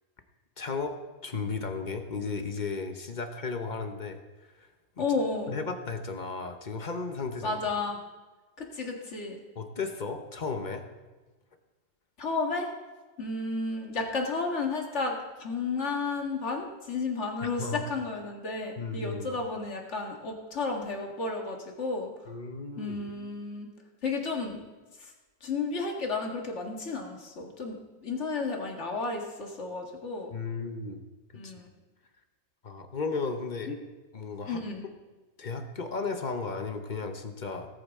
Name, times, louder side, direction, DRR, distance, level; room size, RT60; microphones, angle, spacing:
voice 1, 0.6-4.2 4.5-5.0 5.5-7.6 9.6-10.9 17.4-17.8 18.8-19.3 22.3-23.0 30.3-31.0 31.4-31.5 32.6-33.7 34.1-34.6 35.4-37.7, left 4 dB, 40° left, 6 dB, 1.0 m, -35 dB
voice 2, 5.0-5.5 7.4-8.0 8.6-9.4 12.2-12.7 13.2-22.3 22.8-23.7 24.0-24.6 25.0-25.1 25.4-30.3 31.4-31.7 33.7-33.8 34.5-34.8, left 3 dB, 70° left, 1 dB, 2.0 m, -32 dB
18.5 x 8.6 x 3.7 m, 1.2 s
omnidirectional pair, 1.2 m